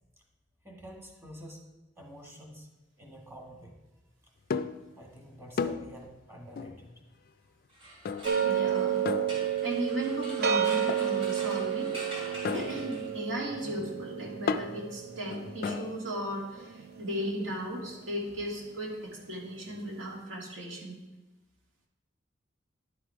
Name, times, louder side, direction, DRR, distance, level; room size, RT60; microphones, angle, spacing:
voice 1, 0.6-1.6 2.0-2.7 3.0-3.8 4.9-6.9 8.7-8.9, equal, 15° right, 0 dB, 1.5 m, -48 dB
sound 1, 4.5-4.9 5.6-6.0 6.6-6.9 8.0-8.5 9.0-9.8 10.9-11.2 12.4-16.0, left 5 dB, 50° left, 0.3 m, -35 dB
sound 2, 7.7-13.4, right 1 dB, 30° right, 2.5 m, -44 dB
sound 3, 8.2-17.4, right 9 dB, 55° right, 0.6 m, -31 dB
voice 2, 8.4-9.0 9.4-12.0 12.5-21.0, equal, 85° right, -2 dB, 2.2 m, -36 dB
11.0 x 5.0 x 4.8 m, 1.1 s
head